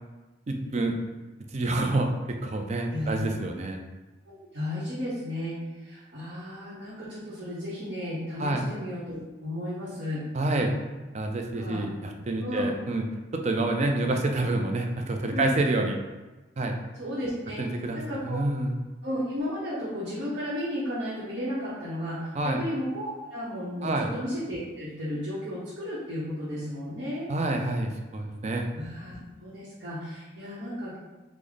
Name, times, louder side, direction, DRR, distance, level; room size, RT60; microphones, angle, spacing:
voice 1, 0.5-1.0 1.5-3.8 8.4-8.6 10.3-10.7 11.1-13.1 13.3-16.0 16.6-16.8 17.6-18.8 22.3-22.6 23.8-24.1 27.3-28.7, right 2 dB, 35° right, 3 dB, 0.4 m, -28 dB
voice 2, 2.9-3.2 3.6-3.7 4.2-10.2 11.5-11.8 12.4-12.7 15.3-15.5 17.0-17.6 17.9-18.4 19.0-27.3 28.7-31.0, equal, 70° right, -11 dB, 0.8 m, -34 dB
3.8 x 2.0 x 3.2 m, 1.2 s
head